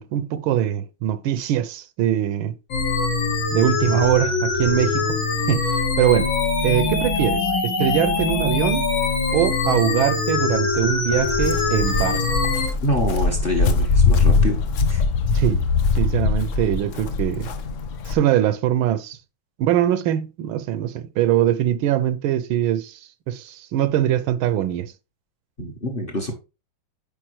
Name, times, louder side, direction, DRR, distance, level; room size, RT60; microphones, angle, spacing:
voice 1, 0.0-2.6 3.5-5.2 5.5-6.3 6.6-8.9 9.3-12.4 15.3-15.6 16.0-17.5 18.1-19.2 19.6-24.9, right 12 dB, 80° right, 1.4 m, -22 dB
sound 1, 2.7-12.7, left 3 dB, 70° left, 2.3 m, -23 dB
Walk footsteps, 11.1-18.1, left 4 dB, 90° left, 0.6 m, -21 dB
voice 2, 12.8-14.6 14.9-15.0 25.6-26.3, left 1 dB, 35° left, 1.0 m, -25 dB
8.8 x 5.0 x 3.1 m
omnidirectional pair, 2.3 m